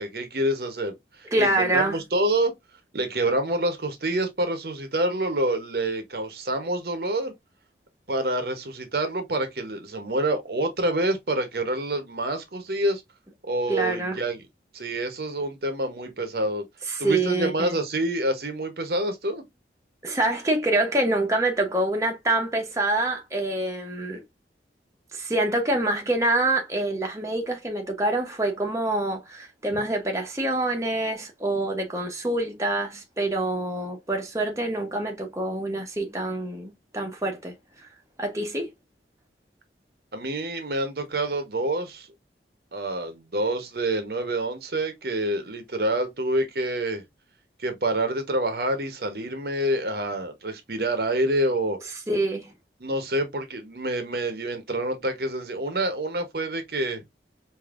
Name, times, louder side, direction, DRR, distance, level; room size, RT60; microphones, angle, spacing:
voice 1, 0.0-2.5 2.9-7.3 8.1-13.0 13.4-14.4 14.7-16.6 17.0-19.4 40.1-42.1 42.7-47.0 47.6-51.8 52.8-57.0, right 1 dB, 60° right, 0.9 m, -27 dB
voice 2, 1.3-2.0 13.7-14.2 16.9-17.8 20.0-24.2 25.1-37.5 38.2-38.7 52.1-52.5, right 2 dB, 15° right, 0.8 m, -26 dB
5.0 x 2.7 x 2.4 m
head